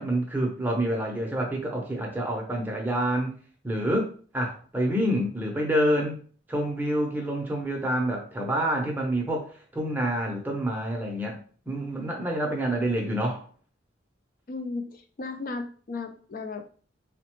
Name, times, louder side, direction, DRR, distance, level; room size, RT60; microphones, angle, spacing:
voice 1, 0.0-3.4 3.6-6.2 6.5-11.4 11.7-13.5, right 1 dB, 10° right, 0 dB, 0.6 m, -27 dB
voice 2, 14.5-16.7, left 3 dB, 45° left, 6 dB, 0.4 m, -35 dB
3.9 x 2.1 x 2.9 m, 0.42 s
head